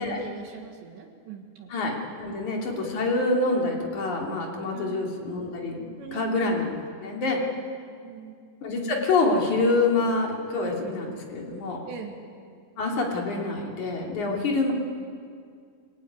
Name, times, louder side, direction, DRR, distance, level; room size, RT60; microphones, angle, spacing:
voice 1, 0.0-1.7 4.7-5.3 6.0-6.6 8.0-8.4 11.9-12.2, right 6 dB, 65° right, 3 dB, 3.6 m, -41 dB
voice 2, 1.7-5.8 6.1-6.7 7.0-7.4 8.6-11.8 12.8-14.7, left 3 dB, 40° left, 0 dB, 3.6 m, -26 dB
25.5 x 18.0 x 9.5 m, 2.2 s
omnidirectional pair, 6.0 m